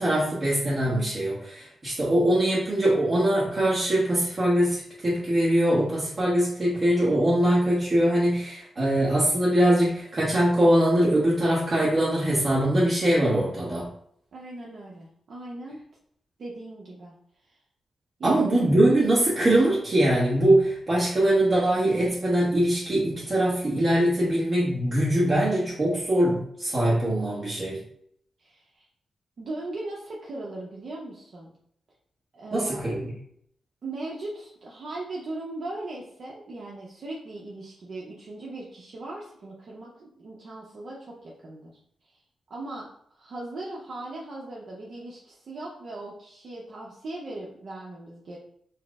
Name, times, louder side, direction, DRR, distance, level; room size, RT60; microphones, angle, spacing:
voice 1, 0.0-13.9 18.2-27.8 32.5-33.1, right 1 dB, 35° right, -7 dB, 1.0 m, -22 dB
voice 2, 14.3-15.8 16.4-17.1 17.5-17.6 18.2-18.4 28.4-28.9 29.4-31.5 32.3-32.9 33.8-41.8 42.1-42.2 42.5-48.4, right 2 dB, 55° right, -4 dB, 0.8 m, -38 dB
4.5 x 2.1 x 4.6 m, 0.68 s
wide cardioid pair, 125°, 0 cm